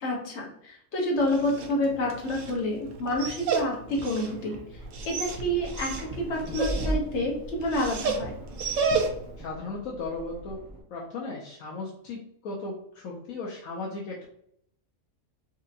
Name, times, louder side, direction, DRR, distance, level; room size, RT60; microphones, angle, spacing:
voice 1, 0.0-4.6 5.0-8.4, left 1 dB, 55° left, -2 dB, 1.3 m, -28 dB
Dog, 1.1-9.4, right 4 dB, 70° right, 1.0 m, -32 dB
sound 1, 4.7-10.8, right 1 dB, 20° right, 0.6 m, -38 dB
voice 2, 9.4-10.6 10.9-14.3, left 3 dB, 75° left, -3 dB, 1.1 m, -36 dB
4.3 x 2.7 x 2.5 m, 0.69 s
omnidirectional pair, 1.4 m